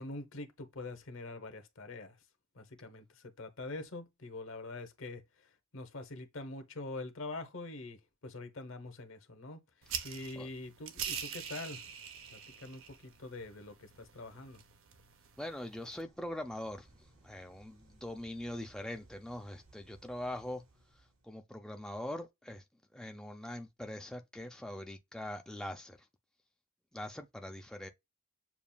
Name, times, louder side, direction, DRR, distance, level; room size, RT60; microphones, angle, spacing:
voice 1, 0.0-2.2 2.5-11.9 12.3-14.6, left 2 dB, 65° left, 0.9 m, -45 dB
sound 1, 9.8-16.0, right 8 dB, 70° right, 0.6 m, -44 dB
voice 2, 15.4-20.6 21.2-22.6 22.9-26.1 26.9-27.9, left 1 dB, 5° left, 0.4 m, -42 dB
sound 2, 15.7-21.4, right 2 dB, 90° right, 3.0 m, -64 dB
7.1 x 2.4 x 2.2 m
head